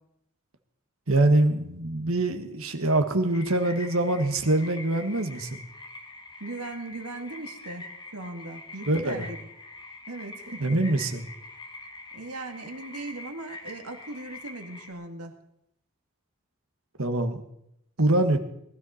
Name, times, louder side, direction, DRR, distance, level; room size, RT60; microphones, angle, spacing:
voice 1, 1.1-5.6 8.9-9.3 10.6-11.2 17.0-17.4 18.0-18.4, right 2 dB, 65° right, 6 dB, 1.6 m, -24 dB
sound 1, 3.3-14.9, left 2 dB, 20° left, 1.5 m, -44 dB
voice 2, 6.4-7.8 8.1-9.4 10.1-10.6 12.1-15.3, right 2 dB, 85° right, 5 dB, 2.0 m, -38 dB
19.5 x 13.0 x 4.3 m, 0.78 s
head